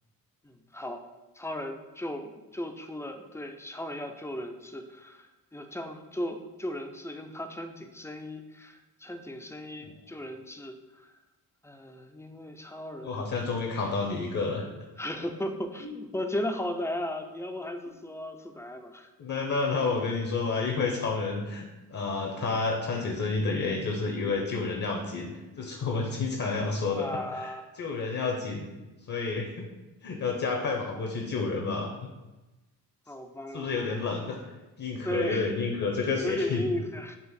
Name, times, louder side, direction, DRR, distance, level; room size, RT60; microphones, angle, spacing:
voice 1, 0.4-1.0 1.4-11.1 11.6-13.4 15.0-19.1 26.9-27.6 30.5-30.8 33.1-33.8 35.0-35.5 36.2-37.2, left 1 dB, 5° left, 5 dB, 0.4 m, -36 dB
voice 2, 13.0-14.7 15.8-15.9 19.2-21.6 21.9-28.7 29.1-29.6 30.0-32.1 33.5-34.4 34.8-36.6, left 4 dB, 50° left, 0 dB, 0.8 m, -30 dB
3.9 x 2.5 x 4.2 m, 1.1 s
cardioid pair, 55°, 40 cm